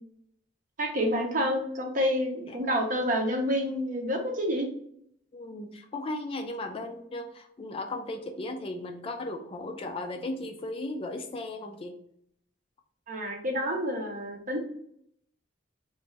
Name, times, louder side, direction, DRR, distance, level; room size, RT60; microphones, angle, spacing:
voice 1, 0.8-4.7 13.1-14.6, equal, 45° right, 1 dB, 0.8 m, -28 dB
voice 2, 5.3-12.0, left 2 dB, 30° left, 5 dB, 0.4 m, -36 dB
3.2 x 2.5 x 3.2 m, 0.69 s
head